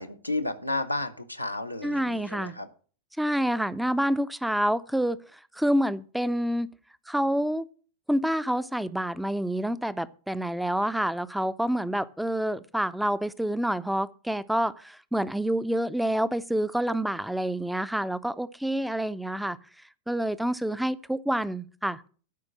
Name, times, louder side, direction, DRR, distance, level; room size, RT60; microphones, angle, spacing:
voice 1, 0.0-2.7, left 2 dB, 90° left, 0.9 m, -32 dB
voice 2, 1.8-2.5 3.2-6.7 7.1-7.7 8.1-19.6 20.1-22.1, right 1 dB, ahead, 0.6 m, -28 dB
12.5 x 5.1 x 7.5 m
figure-of-eight pair, 90°, 0 cm